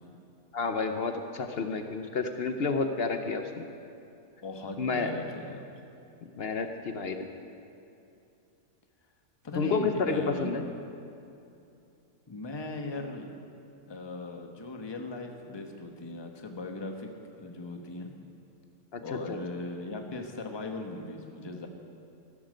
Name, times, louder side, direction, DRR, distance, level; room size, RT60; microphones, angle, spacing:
voice 1, 0.5-3.7 4.8-5.1 6.4-7.3 9.6-10.6 18.9-19.4, left 4 dB, 55° left, 6 dB, 0.7 m, -30 dB
voice 2, 4.4-5.6 9.4-10.5 12.3-13.3 13.9-18.1 19.0-21.7, left 2 dB, 20° left, 3 dB, 0.8 m, -38 dB
15.0 x 13.0 x 5.1 m, 2.7 s
omnidirectional pair, 1.9 m